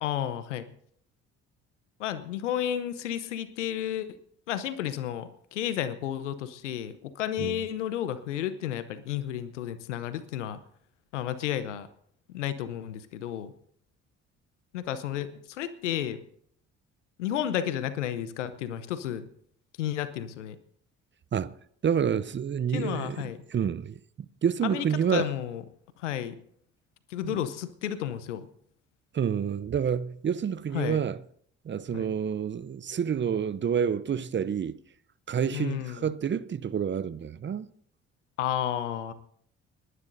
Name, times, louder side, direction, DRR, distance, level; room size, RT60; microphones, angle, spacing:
voice 1, 0.0-0.7 2.0-4.2 4.5-10.6 11.1-11.9 12.3-13.5 14.7-16.2 17.2-19.3 19.8-20.6 22.7-23.4 24.6-24.8 25.1-25.6 26.0-26.3 27.1-28.5 30.7-31.0 31.9-32.1 35.5-36.1 38.4-39.1, left 11 dB, 85° left, 0.8 m, -32 dB
voice 2, 21.8-25.3 27.2-27.4 29.1-31.2 31.6-34.8 35.3-37.7, right 7 dB, 30° right, 0.7 m, -28 dB
30.0 x 11.0 x 2.7 m
hypercardioid pair, 50°, 35 cm